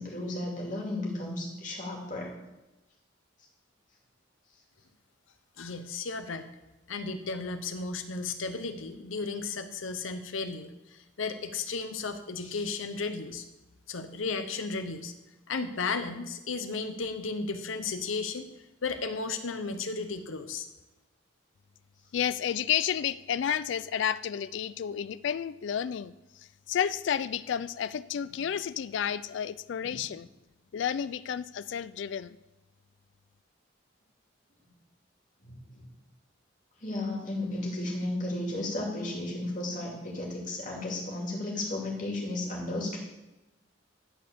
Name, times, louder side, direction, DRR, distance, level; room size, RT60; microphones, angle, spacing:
voice 1, 0.0-2.3 28.3-28.4 29.8-30.0 35.4-35.8 36.8-43.0, left 1 dB, 40° left, -2 dB, 2.3 m, -34 dB
voice 2, 5.6-6.5 6.9-13.4 13.9-15.1 15.5-18.5 18.8-20.7, left 4 dB, 85° left, 9 dB, 0.8 m, -34 dB
voice 3, 22.1-30.3 30.7-32.4, left 9 dB, 65° left, 16 dB, 0.3 m, -31 dB
11.0 x 4.2 x 6.8 m, 0.99 s
head